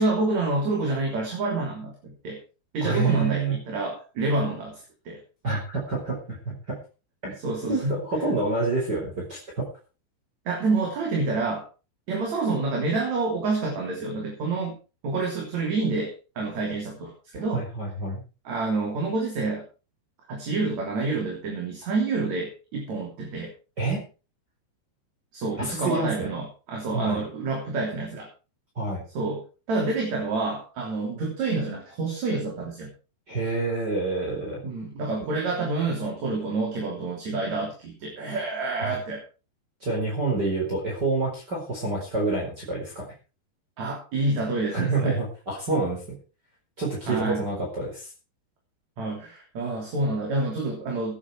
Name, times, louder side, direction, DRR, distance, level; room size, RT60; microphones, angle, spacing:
voice 1, 0.0-2.4 2.7-4.8 5.1-5.2 7.4-7.9 10.5-11.7 12.1-14.8 15.0-17.6 18.4-19.6 20.3-23.5 25.3-28.3 29.1-32.9 34.6-39.2 43.8-45.2 47.1-47.4 49.0-51.2, right 3 dB, 40° right, 0 dB, 4.1 m, -28 dB
voice 2, 2.8-3.6 5.4-6.8 7.2-7.4 7.7-9.7 17.5-18.2 23.8-24.0 25.6-26.3 26.9-27.2 28.8-29.0 33.3-34.6 38.8-39.0 39.8-43.0 44.7-46.0 46.8-48.1, right 3 dB, 25° right, -2 dB, 4.6 m, -27 dB
17.0 x 9.6 x 4.8 m, 0.33 s
omnidirectional pair, 5.2 m